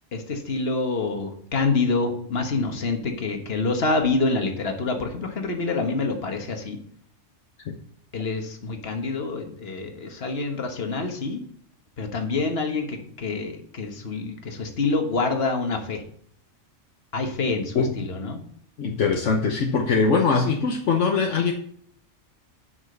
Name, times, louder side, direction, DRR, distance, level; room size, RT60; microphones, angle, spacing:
voice 1, 0.1-6.8 8.1-11.4 12.0-16.0 17.1-18.4, left 3 dB, 55° left, 4 dB, 1.6 m, -26 dB
voice 2, 18.8-21.5, left 4 dB, 70° left, 2 dB, 1.2 m, -22 dB
7.6 x 6.0 x 6.6 m, 0.63 s
omnidirectional pair, 1.3 m